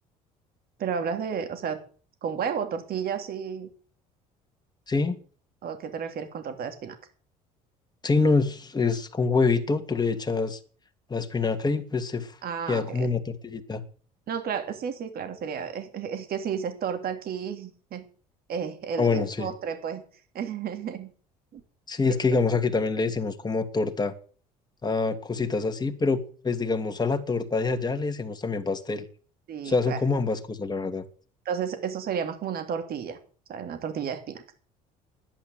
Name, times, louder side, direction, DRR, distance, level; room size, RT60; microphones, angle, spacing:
voice 1, 0.8-1.8 2.2-3.7 5.6-7.0 12.4-13.1 14.3-18.0 18.5-20.0 20.3-21.1 21.5-21.6 22.3-22.4 29.5-30.0 31.4-33.2 33.5-34.4, right 7 dB, 55° right, 3.1 m, -32 dB
voice 2, 4.9-5.2 8.0-10.6 11.1-12.3 12.7-13.8 19.0-19.5 21.9-24.1 24.8-29.1 29.6-31.0, left 4 dB, 20° left, 2.5 m, -26 dB
11.5 x 11.0 x 7.9 m
hypercardioid pair, 70°, 18 cm